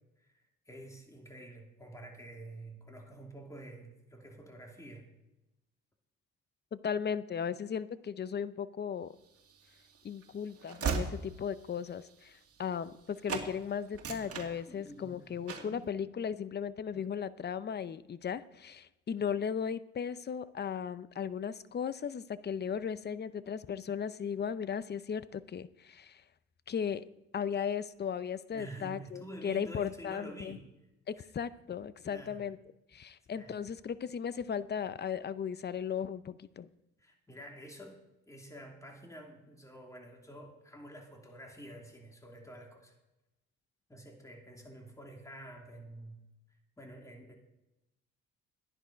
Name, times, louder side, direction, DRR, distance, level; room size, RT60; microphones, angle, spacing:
voice 1, 0.7-5.1 14.7-15.8 28.5-30.6 32.1-32.5 33.3-33.6 37.0-38.0 38.3-42.9 43.9-46.2 46.8-47.4, right 1 dB, 10° left, 1 dB, 2.9 m, -49 dB
voice 2, 6.7-9.1 10.0-26.2 26.7-27.0 27.3-30.6 31.1-32.6 32.9-36.7, left 7 dB, 35° left, 15 dB, 0.7 m, -36 dB
Train / Slam, 9.4-13.0 13.3-13.5 13.9-15.1 15.5-15.8, right 5 dB, 50° right, 2.2 m, -38 dB
13.5 x 10.5 x 5.1 m, 0.94 s
cardioid pair, 90°, 30 cm